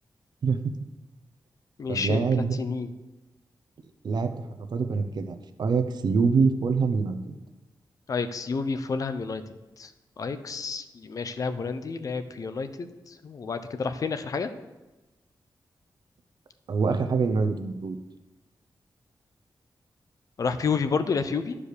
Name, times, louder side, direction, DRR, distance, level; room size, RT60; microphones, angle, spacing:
voice 1, 0.4-0.7 1.9-2.6 4.0-4.3 4.7-7.2 16.7-18.0, right 5 dB, 70° right, 8 dB, 0.8 m, -25 dB
voice 2, 1.8-2.2 2.6-2.9 8.1-9.4 9.8-9.9 10.2-14.5 20.4-21.6, left 5 dB, 50° left, 10 dB, 0.6 m, -30 dB
12.0 x 4.9 x 6.7 m, 1.1 s
wide cardioid pair, 180°, 7 cm